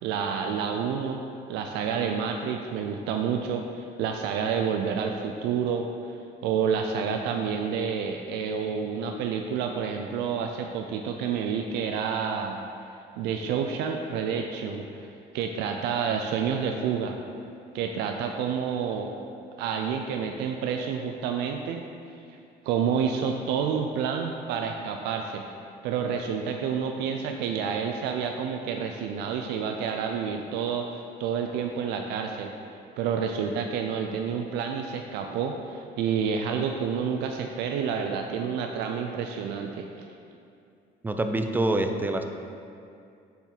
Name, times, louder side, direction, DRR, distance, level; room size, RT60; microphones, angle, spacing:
voice 1, 0.0-1.2 1.5-6.2 6.4-12.6 13.2-17.2 17.7-19.1 19.6-21.8 22.7-25.4 25.8-32.5 33.0-39.9, right 6 dB, 90° right, 4 dB, 0.4 m, -29 dB
voice 2, 41.0-42.2, right 2 dB, 10° right, 6 dB, 0.4 m, -26 dB
7.1 x 4.5 x 3.9 m, 2.5 s
cardioid pair, 110°, 17 cm